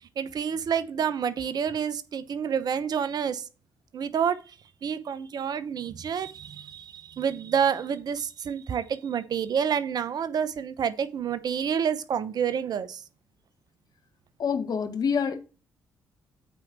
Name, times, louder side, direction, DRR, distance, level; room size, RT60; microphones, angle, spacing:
voice 1, 0.0-3.4 3.9-4.4 4.8-13.0, right 7 dB, 55° right, 0.8 m, -28 dB
voice 2, 14.4-15.4, left 6 dB, 50° left, 1.5 m, -26 dB
8.9 x 4.6 x 6.0 m
hypercardioid pair, 45°, 8 cm